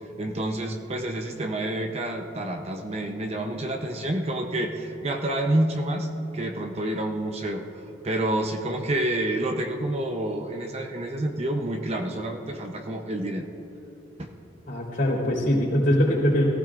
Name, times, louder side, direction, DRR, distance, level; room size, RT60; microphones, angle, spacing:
voice 1, 0.2-6.1 6.3-13.5 14.2-14.3, right 1 dB, 30° right, 3 dB, 0.7 m, -28 dB
voice 2, 14.7-16.5, equal, 50° left, -7 dB, 3.4 m, -22 dB
21.5 x 15.0 x 2.5 m, 3.0 s
head